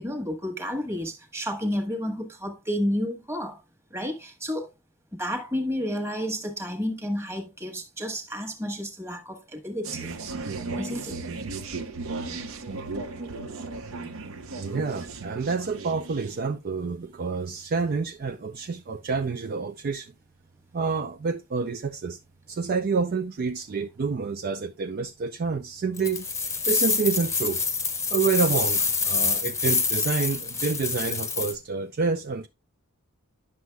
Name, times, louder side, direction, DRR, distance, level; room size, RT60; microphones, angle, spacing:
voice 1, 0.0-3.6 3.9-4.7 5.1-10.1 10.8-11.2, equal, 10° right, 1.3 m, -31 dB
sound 1, 9.8-16.4, right 3 dB, 60° right, 0.8 m, -35 dB
voice 2, 14.5-20.1 20.7-22.2 22.5-27.6 28.1-32.5, right 4 dB, 40° right, 0.4 m, -28 dB
sound 2, 26.0-31.5, left 4 dB, 15° left, 0.7 m, -26 dB
9.6 x 6.2 x 2.3 m
head